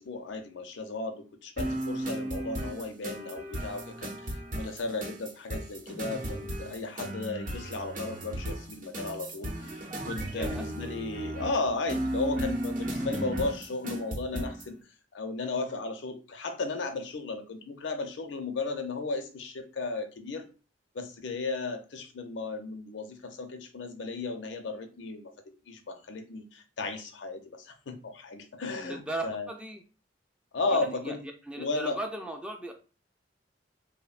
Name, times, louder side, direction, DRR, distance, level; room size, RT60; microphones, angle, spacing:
voice 1, 0.0-14.8 15.1-20.4 20.9-25.3 25.7-29.5 30.5-31.2 31.6-32.0, left 3 dB, 80° left, 7 dB, 0.5 m, -35 dB
sound 1, 1.6-14.7, right 1 dB, 50° right, 0.7 m, -35 dB
voice 2, 10.3-10.6 28.8-29.8 30.7-31.2 31.5-32.7, right 1 dB, 5° right, 3 dB, 0.3 m, -37 dB
3.2 x 2.1 x 2.3 m, 0.35 s
head